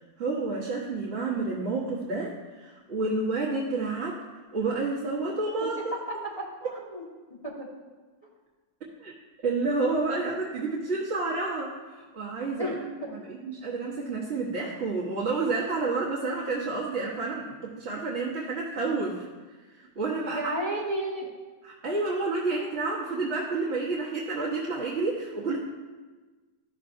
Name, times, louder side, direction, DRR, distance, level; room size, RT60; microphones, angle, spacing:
voice 1, 0.2-4.2 4.5-5.9 9.0-9.1 9.4-12.7 13.1-19.3 19.7-20.5 21.6-25.6, right 3 dB, 45° right, -6 dB, 1.3 m, -30 dB
voice 2, 5.8-7.0 7.4-7.5 12.6-13.1 20.3-21.3, right 1 dB, 20° left, -5 dB, 1.6 m, -33 dB
13.5 x 6.1 x 2.6 m, 1.3 s
omnidirectional pair, 1.7 m